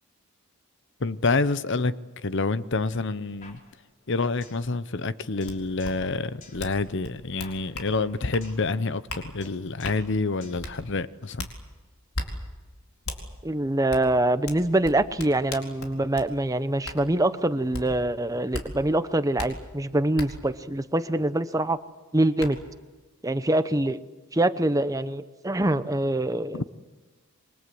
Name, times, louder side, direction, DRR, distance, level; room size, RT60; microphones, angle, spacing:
voice 1, 1.0-1.9 2.2-3.6 4.1-11.5 26.5-26.6, left 3 dB, 55° left, 0.8 m, -27 dB
sound 1, 3.4-4.7 4.9-5.0 5.4-6.1 6.4-8.7 8.9-9.1 9.4-10.1 10.4-11.4, left 2 dB, 35° left, 4.5 m, -50 dB
sound 2, 5.5-5.6 5.8-5.9 6.6-6.8 7.0-7.9 8.3-8.5 9.1-9.2 9.8-10.0 10.6-10.7 11.4-11.5 12.1-12.3 13.1-13.2 13.9-14.0 14.5-16.3 16.8-17.0 17.7-17.8 18.5-18.7 19.4-19.5 20.2-20.3 21.8-21.9 22.4-22.5, left 2 dB, 75° left, 4.4 m, -35 dB
voice 2, 13.4-21.8 22.1-22.6 23.2-24.0 24.3-26.7, right 1 dB, 15° right, 0.8 m, -24 dB
27.5 x 24.0 x 7.8 m
head